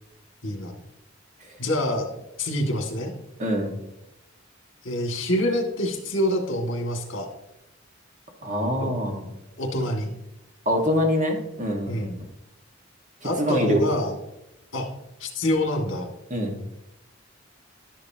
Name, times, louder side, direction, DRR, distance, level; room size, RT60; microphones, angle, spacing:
voice 1, 0.4-0.8 1.6-2.1 2.4-3.1 4.8-7.3 8.8-8.9 9.6-10.1 11.9-12.1 13.2-14.1 14.7-14.9 15.2-16.1, left 1 dB, 70° left, 2 dB, 2.3 m, -26 dB
voice 2, 3.4-3.7 8.4-9.2 10.6-12.1 13.4-13.8 16.3-16.6, equal, 40° right, 2 dB, 1.7 m, -24 dB
12.0 x 10.0 x 2.9 m, 0.89 s
head